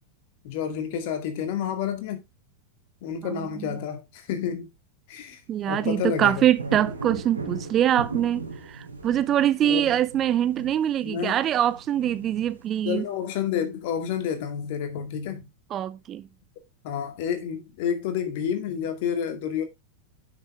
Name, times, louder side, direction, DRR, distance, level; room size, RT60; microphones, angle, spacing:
voice 1, 0.4-2.2 3.0-4.7 5.1-5.4 5.7-6.8 9.6-10.0 11.0-11.4 12.8-15.4 16.8-19.6, left 8 dB, 50° left, 2.1 m, -29 dB
voice 2, 5.5-13.0 15.7-16.3, right 11 dB, 30° right, 0.5 m, -24 dB
sound 1, 5.5-13.0, right 3 dB, 80° right, 2.7 m, -38 dB
8.9 x 6.8 x 3.3 m
figure-of-eight pair, 90°, 0 cm